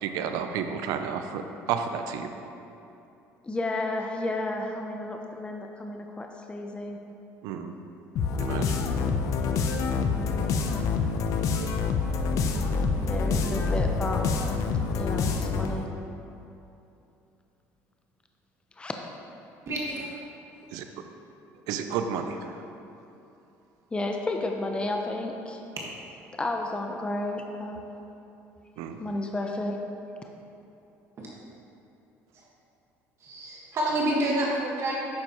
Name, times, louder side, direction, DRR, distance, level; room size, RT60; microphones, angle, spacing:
voice 1, 0.0-1.4 1.7-2.3 7.4-7.7 8.4-8.8 20.7-20.8 21.7-22.6 28.8-29.0, right 7 dB, 80° right, 7 dB, 0.6 m, -31 dB
voice 2, 3.4-7.0 10.1-10.4 13.0-14.2 14.9-15.9 18.8-18.9 23.9-25.6 26.3-27.8 29.0-29.8, left 2 dB, 15° left, 2 dB, 0.7 m, -32 dB
sound 1, 8.2-15.8, left 4 dB, 60° left, 0.6 m, -26 dB
voice 3, 19.7-20.1 31.2-31.3 33.2-35.1, right 1 dB, 45° right, -4 dB, 1.6 m, -28 dB
9.5 x 6.8 x 3.1 m, 2.8 s
supercardioid pair, 95°, 6 cm